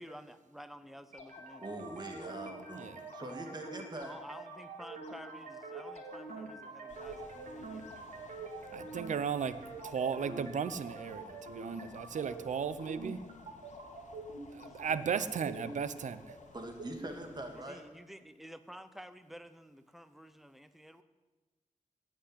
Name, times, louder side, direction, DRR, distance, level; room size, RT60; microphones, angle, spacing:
voice 1, 0.0-1.6 4.0-8.0 14.5-15.5 17.6-21.0, equal, ahead, 11 dB, 0.8 m, -51 dB
sound 1, 1.1-17.1, right 3 dB, 85° right, 2.6 m, -46 dB
sound 2, 1.2-16.6, left 3 dB, 55° left, 2.4 m, -57 dB
voice 2, 1.6-4.1 16.5-17.8, right 1 dB, 35° right, 4 dB, 2.2 m, -43 dB
voice 3, 2.7-3.0 8.7-13.2 14.5-16.4, right 7 dB, 70° right, 14 dB, 0.8 m, -36 dB
sound 3, 6.9-17.6, left 5 dB, 70° left, 1.2 m, -59 dB
16.0 x 6.3 x 9.9 m, 1.3 s
wide cardioid pair, 110°, 13 cm